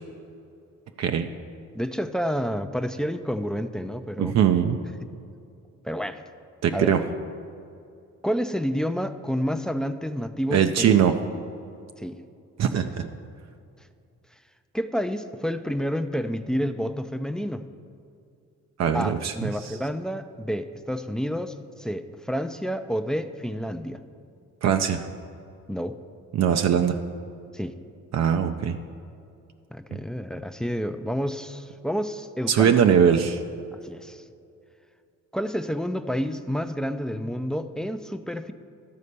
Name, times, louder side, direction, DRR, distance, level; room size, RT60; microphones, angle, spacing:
voice 1, 1.7-4.4 5.8-6.2 6.7-6.9 8.2-11.4 12.0-12.2 12.8-12.9 14.7-17.6 18.9-24.0 25.7-26.0 27.5-27.7 29.7-32.8 33.7-34.2 35.3-38.5, equal, ahead, 9 dB, 0.4 m, -29 dB
voice 2, 4.2-4.8 6.6-7.0 10.5-11.2 12.6-13.1 18.8-19.5 24.6-25.1 26.3-27.0 28.1-28.8 29.9-30.0 32.5-33.4, right 8 dB, 60° right, 6 dB, 0.6 m, -21 dB
12.5 x 4.2 x 6.7 m, 2.5 s
cardioid pair, 90°, 30 cm